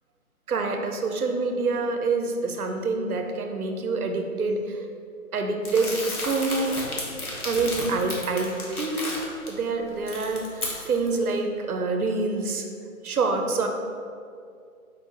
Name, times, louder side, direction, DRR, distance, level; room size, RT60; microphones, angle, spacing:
voice 1, 0.5-5.0 5.3-6.0 6.2-6.8 7.4-12.7 13.0-13.7, right 3 dB, 80° right, 4 dB, 0.6 m, -26 dB
Crumpling crinkling, 5.6-9.5 9.9-11.2, left 1 dB, 85° left, 1.2 m, -33 dB
4.5 x 2.5 x 3.7 m, 2.3 s
figure-of-eight pair, 150°, 43 cm